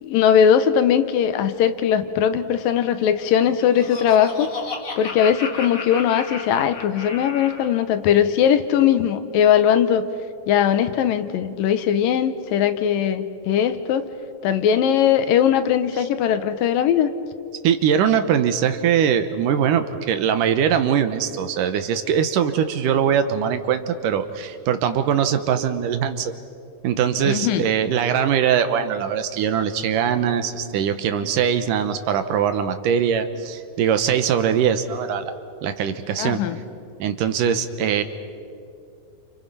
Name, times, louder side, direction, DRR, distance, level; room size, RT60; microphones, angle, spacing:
voice 1, 0.0-4.5 5.0-10.1 10.5-14.1 14.4-17.1 27.2-27.7 36.2-36.6, left 9 dB, 85° left, 10 dB, 2.7 m, -19 dB
Laughter, 3.3-7.8, left 4 dB, 35° left, 2.5 m, -34 dB
voice 2, 17.6-26.3 26.8-35.3 35.6-36.4 37.0-38.0, right 8 dB, 75° right, 9 dB, 2.6 m, -21 dB
29.0 x 28.5 x 5.7 m, 2.4 s
omnidirectional pair, 3.9 m